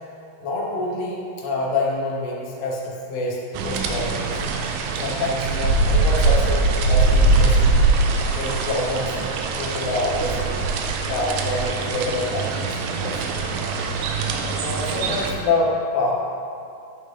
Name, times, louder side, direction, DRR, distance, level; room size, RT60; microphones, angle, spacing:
voice 1, 0.4-4.4 5.0-7.9 8.3-9.2 9.5-10.7 11.1-12.7 13.0-13.4 14.6-16.2, left 2 dB, 70° left, -2 dB, 2.8 m, -26 dB
sound 1, 3.5-15.3, right 3 dB, 80° right, 2.5 m, -22 dB
11.0 x 5.6 x 3.2 m, 2.4 s
omnidirectional pair, 5.1 m